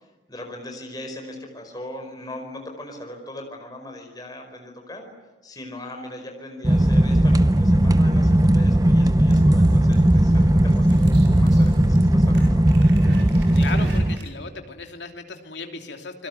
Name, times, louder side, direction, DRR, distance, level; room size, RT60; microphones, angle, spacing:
voice 1, 0.3-5.1 5.4-12.7, left 1 dB, 20° left, 3 dB, 4.9 m, -39 dB
sound 1, 6.6-14.2, right 1 dB, 20° right, 0.9 m, -17 dB
sound 2, 8.0-14.5, right 1 dB, 65° right, 5.0 m, -40 dB
voice 2, 13.5-16.3, left 3 dB, 65° left, 4 dB, 3.0 m, -36 dB
29.0 x 22.0 x 9.4 m, 1.2 s
head